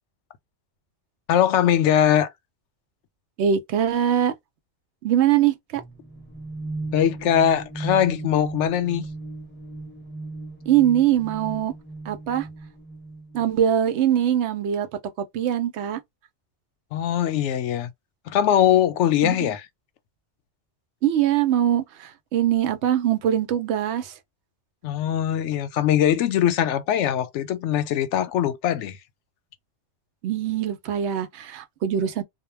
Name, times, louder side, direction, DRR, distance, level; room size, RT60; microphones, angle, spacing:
voice 1, 1.3-2.3 6.9-9.1 16.9-17.9 18.3-19.6 24.8-29.0, left 10 dB, 85° left, 0.9 m, -21 dB
voice 2, 3.4-4.3 5.0-5.8 10.7-11.7 12.1-12.5 13.3-14.9 15.3-16.0 19.2-19.4 21.0-24.1 30.2-32.2, right 10 dB, 75° right, 0.8 m, -22 dB
sound 1, 5.7-13.5, right 2 dB, 20° left, 0.3 m, -37 dB
2.2 x 2.1 x 3.1 m
omnidirectional pair, 1.2 m